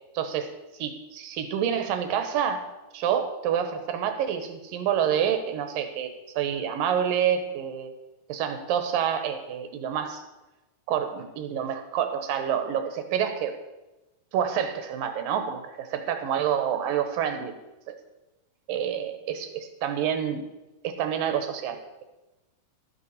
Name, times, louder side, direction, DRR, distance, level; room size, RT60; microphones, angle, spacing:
voice 1, 0.1-0.5 0.8-2.6 2.9-6.1 6.4-7.9 8.3-10.2 10.9-13.5 14.3-17.6 17.9-18.0 18.7-20.5 20.8-22.0, right 8 dB, 70° right, 7 dB, 2.7 m, -28 dB
12.5 x 7.1 x 6.6 m, 1.0 s
omnidirectional pair, 4.4 m